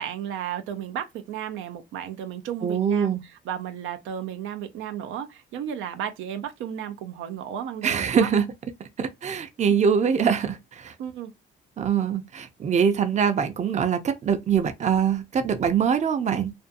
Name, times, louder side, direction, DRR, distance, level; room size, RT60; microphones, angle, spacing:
voice 1, 0.0-3.1 3.5-8.3 11.0-11.3, right 9 dB, 90° right, 0.5 m, -33 dB
voice 2, 2.6-3.2 7.8-8.5 9.0-10.9 11.8-16.5, right 7 dB, 35° right, 0.5 m, -23 dB
2.5 x 2.3 x 2.5 m
cardioid pair, 90°, 20 cm